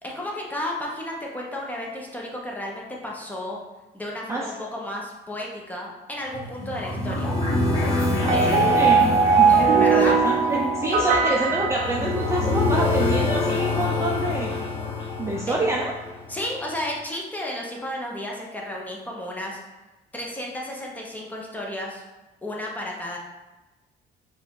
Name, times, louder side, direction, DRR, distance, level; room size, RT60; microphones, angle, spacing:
voice 1, 0.0-3.6 3.9-7.3 8.3-9.0 9.5-10.2 15.5-15.6 16.3-19.6 20.1-22.0 22.4-23.2, left 1 dB, 10° left, -2 dB, 1.0 m, -32 dB
sound 1, 6.3-16.4, left 2 dB, 25° left, 1.3 m, -26 dB
voice 2, 8.2-9.6 10.0-14.5 15.2-15.9, right 2 dB, 15° right, -2 dB, 0.5 m, -27 dB
sound 2, 8.3-12.6, right 5 dB, 55° right, 0.6 m, -20 dB
4.7 x 2.5 x 3.8 m, 1.1 s
cardioid pair, 110°, 17 cm